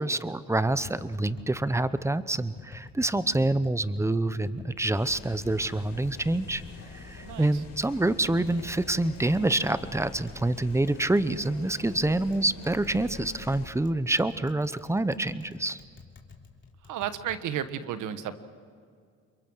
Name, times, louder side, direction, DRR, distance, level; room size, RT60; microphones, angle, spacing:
voice 1, 0.0-6.6 6.9-15.8, right 2 dB, 10° right, 14 dB, 0.9 m, -27 dB
Tap, 0.6-17.4, left 4 dB, 40° left, 3.6 m, -50 dB
sound 1, 4.9-13.7, left 4 dB, 55° left, 5.0 m, -45 dB
voice 2, 16.9-18.4, right 10 dB, 80° right, 11 dB, 1.4 m, -32 dB
28.5 x 23.0 x 6.4 m, 2.2 s
cardioid pair, 90°, 30 cm